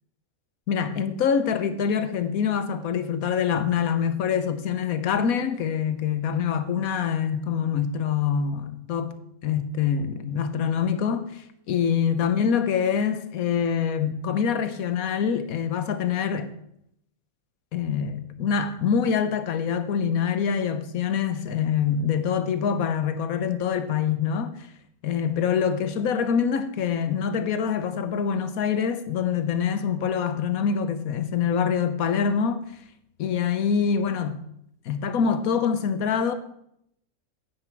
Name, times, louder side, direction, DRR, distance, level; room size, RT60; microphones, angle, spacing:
voice 1, 0.7-9.1 9.4-16.5 17.7-24.7 25.0-32.6 33.2-34.4 34.8-36.3, left 7 dB, 80° left, 1.3 m, -25 dB
9.8 x 8.4 x 4.6 m
omnidirectional pair, 1.5 m